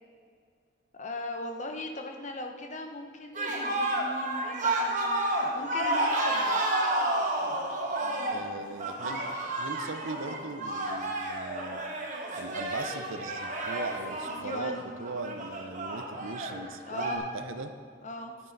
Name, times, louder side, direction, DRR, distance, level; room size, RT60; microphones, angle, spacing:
voice 1, 0.9-5.0 5.5-6.6 8.0-8.6 14.2-14.9 16.8-17.2 18.0-18.3, left 2 dB, 35° left, 4 dB, 0.9 m, -39 dB
sound 1, 3.3-17.2, right 1 dB, 40° right, 1.2 m, -31 dB
voice 2, 8.3-9.2 9.6-11.8 12.4-17.7, right 3 dB, 80° right, 8 dB, 0.7 m, -39 dB
10.0 x 9.3 x 4.0 m, 2.2 s
head